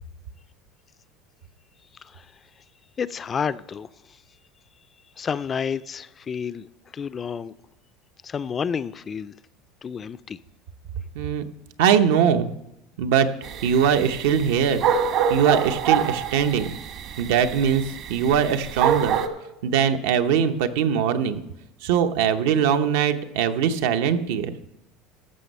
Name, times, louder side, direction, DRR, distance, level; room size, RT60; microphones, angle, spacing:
voice 1, 3.0-3.9 5.2-6.7 6.9-7.5 8.2-9.3 9.8-10.4, left 6 dB, 25° left, 0.3 m, -30 dB
voice 2, 11.8-12.5 13.0-13.3 13.6-14.8 15.3-16.7 17.2-17.8 18.1-19.2 19.6-21.4 21.8-24.5, right 8 dB, 80° right, 0.8 m, -21 dB
sound 1, 13.4-19.3, right 8 dB, 55° right, 1.1 m, -26 dB
14.0 x 6.2 x 5.4 m
supercardioid pair, 135°, 0 cm